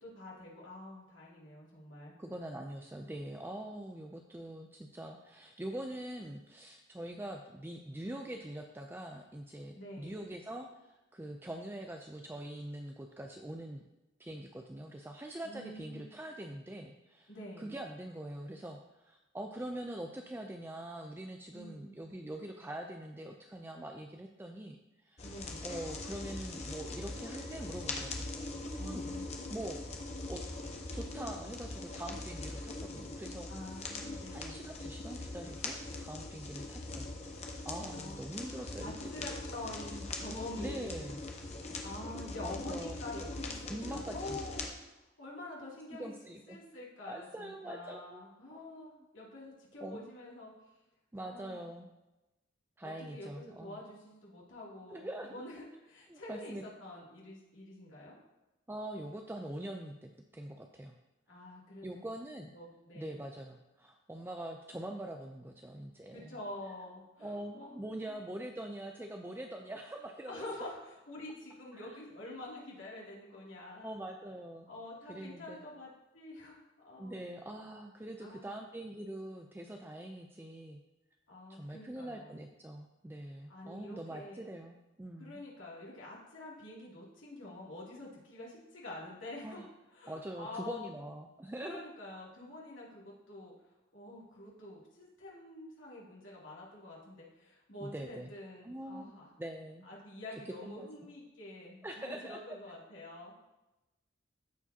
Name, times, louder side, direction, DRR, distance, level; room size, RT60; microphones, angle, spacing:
voice 1, 0.0-2.1 9.7-10.2 15.4-16.1 17.3-17.7 21.5-22.0 25.2-25.6 28.8-29.2 33.5-34.6 37.9-41.1 41.5-46.1 46.5-50.5 51.2-51.6 52.8-58.1 61.3-61.9 62.5-63.2 66.1-67.8 68.1-68.2 70.3-74.0 74.7-76.6 76.8-77.3 78.2-78.6 81.3-82.4 83.5-84.5 85.2-89.6 89.9-90.9 91.6-93.5 93.9-99.3 99.8-103.3, left 1 dB, 80° left, -5 dB, 2.6 m, -47 dB
voice 2, 2.2-13.8 14.2-17.3 17.6-25.3 25.6-29.1 29.5-29.8 30.3-30.4 30.9-33.8 34.3-38.9 40.6-41.2 42.4-43.0 43.7-44.4 45.9-46.6 47.1-48.2 48.5-48.7 49.8-50.0 51.1-51.9 52.8-53.8 54.9-55.5 56.1-56.6 58.7-60.9 61.8-62.5 62.9-66.4 67.2-70.4 71.7-71.9 73.8-74.7 75.1-75.6 77.0-80.8 81.5-85.4 89.4-89.7 90.1-91.8 97.8-98.3 98.6-99.1 99.4-99.9 100.6-100.9 101.8-102.6, right 1 dB, 10° right, 3 dB, 0.3 m, -44 dB
sound 1, 25.2-44.7, left 2 dB, 35° left, 0.9 m, -42 dB
14.0 x 4.8 x 2.8 m, 1.0 s
head